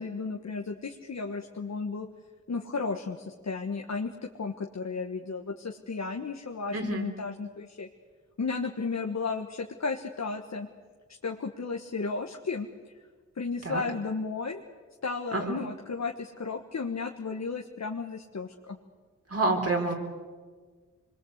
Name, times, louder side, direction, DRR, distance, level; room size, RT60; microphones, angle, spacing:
voice 1, 0.0-2.1 2.5-7.9 8.4-10.7 11.2-12.7 13.3-14.6 15.0-18.8, left 4 dB, 65° left, 3 dB, 1.4 m, -34 dB
voice 2, 6.7-7.0 13.6-13.8 15.3-15.6 19.3-19.9, right 2 dB, 55° right, 2 dB, 4.3 m, -28 dB
25.5 x 22.0 x 8.1 m, 1.5 s
cardioid pair, 50°, 29 cm